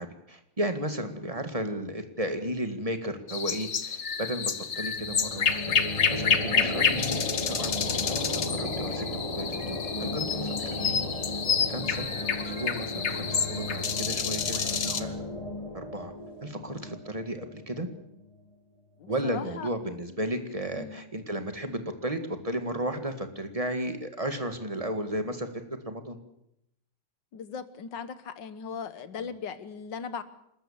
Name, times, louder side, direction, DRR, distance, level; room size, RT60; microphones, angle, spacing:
voice 1, 0.0-5.7 6.1-9.1 9.4-11.1 11.7-12.1 12.4-15.1 15.7-16.1 16.4-17.9 19.1-25.5 25.9-26.2 29.2-29.3, right 1 dB, 15° right, 7 dB, 1.7 m, -34 dB
sound 1, 3.3-15.0, left 6 dB, 45° left, 1.0 m, -29 dB
sound 2, 4.9-18.3, left 2 dB, 15° left, 2.9 m, -35 dB
sound 3, 6.2-8.3 8.6-9.2 9.5-11.4 11.7-15.2, right 4 dB, 60° right, 4.0 m, -49 dB
voice 2, 19.0-19.7 20.8-21.0 27.3-30.2, left 6 dB, 60° left, 13 dB, 1.7 m, -38 dB
29.5 x 13.5 x 7.2 m, 0.80 s
omnidirectional pair, 2.3 m